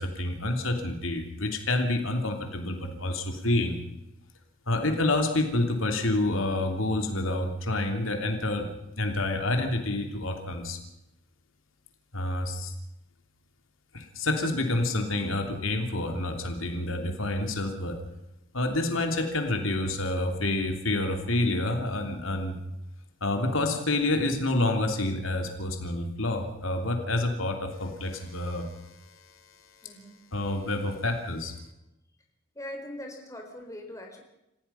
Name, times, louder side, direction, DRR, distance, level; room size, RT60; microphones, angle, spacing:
voice 1, 0.0-3.8 4.7-8.7 9.0-10.8 12.1-12.7 13.9-18.0 18.5-22.6 23.2-29.3 30.3-31.5, left 2 dB, 75° left, 4 dB, 3.1 m, -28 dB
voice 2, 29.8-30.2 32.5-34.2, left 1 dB, 15° left, 2 dB, 4.2 m, -41 dB
29.0 x 16.0 x 5.7 m, 0.90 s
head